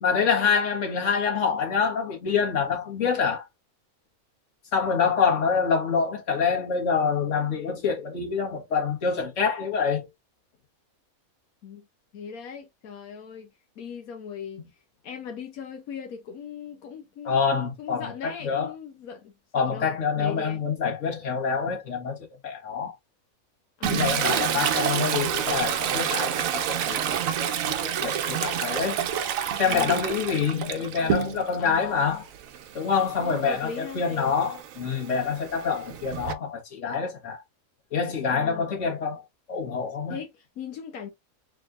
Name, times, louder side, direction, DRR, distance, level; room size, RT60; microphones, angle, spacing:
voice 1, 0.0-3.5 4.7-10.1 17.2-18.7 19.5-22.2 22.4-22.9 23.9-27.0 27.3-29.0 29.6-32.3 32.7-37.4 37.9-39.2 39.5-40.2, left 6 dB, 60° left, 1.7 m, -26 dB
voice 2, 12.1-13.5 13.8-14.6 15.0-17.4 17.8-19.9 20.1-20.6 23.8-24.7 29.6-30.0 31.0-31.2 31.6-32.2 33.2-34.3 38.3-38.7 40.1-41.1, left 7 dB, 85° left, 1.2 m, -39 dB
Toilet flush, 23.8-31.6 32.0-36.3, right 9 dB, 75° right, 1.0 m, -29 dB
4.2 x 3.6 x 2.4 m
omnidirectional pair, 1.5 m